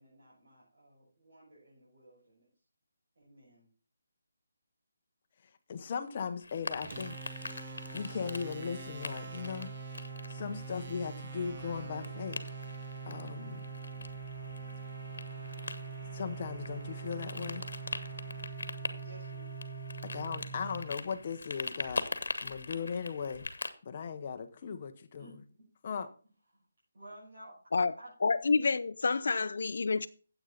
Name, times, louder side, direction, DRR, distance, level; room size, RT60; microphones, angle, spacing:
voice 1, 0.0-2.5 3.2-3.7 19.0-19.5 21.7-21.9 25.2-25.4 26.5-26.7 26.9-27.6 28.0-28.1, right 1 dB, 55° right, 6.2 m, -54 dB
voice 2, 5.7-7.2 7.9-9.7 10.3-12.4 13.1-13.6 16.1-17.6 20.0-22.0 22.4-23.5 23.8-25.3 25.8-26.1, left 6 dB, 35° left, 0.9 m, -38 dB
sound 1, 6.4-23.7, left 3 dB, 80° left, 1.3 m, -43 dB
sound 2, 6.8-21.4, right 5 dB, 35° right, 1.1 m, -43 dB
sound 3, 10.3-19.0, equal, 5° right, 6.4 m, -63 dB
voice 3, 28.2-30.1, left 4 dB, 60° left, 0.5 m, -28 dB
9.7 x 8.3 x 4.0 m
hypercardioid pair, 170°, 0 cm